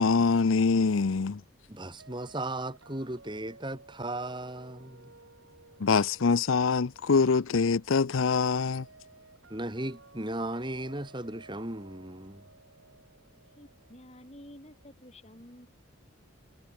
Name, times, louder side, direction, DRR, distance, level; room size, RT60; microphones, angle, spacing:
voice 1, 0.0-1.4 5.8-8.9, left 4 dB, 75° left, 0.6 m, -24 dB
voice 2, 1.7-5.1 9.5-12.4, right 1 dB, 20° right, 2.7 m, -36 dB
sound 1, 2.0-14.8, right 3 dB, 75° right, 6.1 m, -56 dB
voice 3, 13.6-15.7, left 1 dB, 30° left, 4.9 m, -51 dB
head